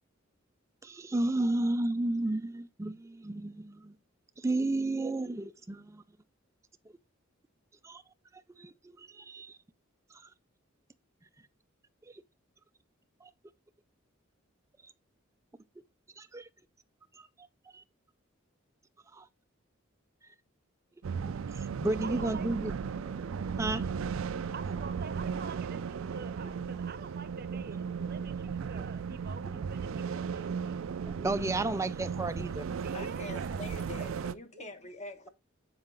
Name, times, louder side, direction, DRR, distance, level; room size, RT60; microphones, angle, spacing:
voice 1, 0.8-3.9 4.4-6.0 7.8-8.0 8.6-8.7 9.0-9.6 16.2-16.5 17.7-17.8 19.1-19.3 21.5-23.8 31.0-32.7, right 2 dB, 15° right, 0.3 m, -32 dB
sound 1, 21.0-34.3, right 6 dB, 80° right, 0.4 m, -36 dB
voice 2, 22.0-22.5 24.5-30.8 32.8-33.8 34.5-34.7, right 5 dB, 50° right, 0.7 m, -46 dB
sound 2, 24.0-33.6, right 1 dB, 75° left, 2.1 m, -58 dB
voice 3, 32.9-35.3, left 2 dB, 35° left, 1.1 m, -44 dB
7.2 x 4.8 x 3.8 m
head